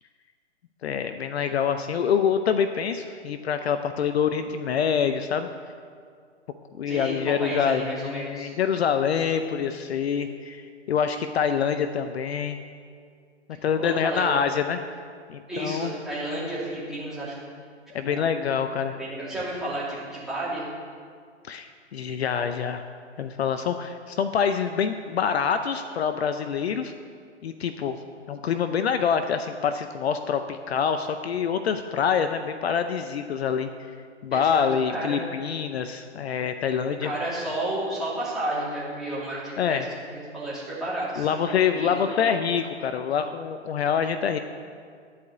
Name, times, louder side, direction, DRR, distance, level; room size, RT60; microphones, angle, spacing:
voice 1, 0.8-5.5 6.7-12.6 13.6-14.8 15.3-15.9 17.9-19.0 21.5-22.8 23.2-26.9 27.4-28.0 28.3-33.7 34.2-37.1 39.6-39.9 41.2-44.4, left 7 dB, 60° left, 9 dB, 0.6 m, -26 dB
voice 2, 6.9-8.5 13.8-14.3 15.5-17.5 18.0-18.2 19.0-20.7 34.3-35.2 37.0-41.4 41.7-42.3, right 1 dB, ahead, -9 dB, 2.7 m, -32 dB
11.5 x 5.0 x 8.0 m, 2.2 s
hypercardioid pair, 145°, 36 cm